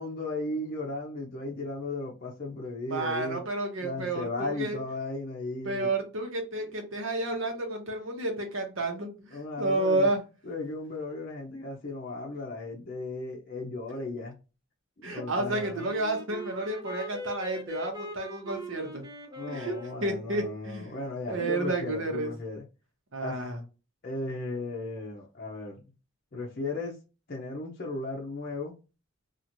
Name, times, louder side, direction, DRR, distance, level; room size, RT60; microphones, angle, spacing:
voice 1, 0.0-3.4 3.8-5.9 9.3-10.1 10.4-14.4 15.0-15.9 19.3-22.7 23.2-23.3 24.0-25.8 26.3-27.0 27.3-28.7, left 2 dB, 45° left, -2 dB, 0.5 m, -36 dB
voice 2, 2.9-4.8 5.6-10.2 15.0-19.0 19.5-19.7 20.0-21.0 21.3-22.3 23.1-23.6, right 2 dB, 75° right, 3 dB, 0.9 m, -31 dB
Wind instrument woodwind instrument, 15.5-20.2, left 1 dB, 20° right, 0.5 m, -41 dB
2.9 x 2.4 x 2.5 m, 0.31 s
head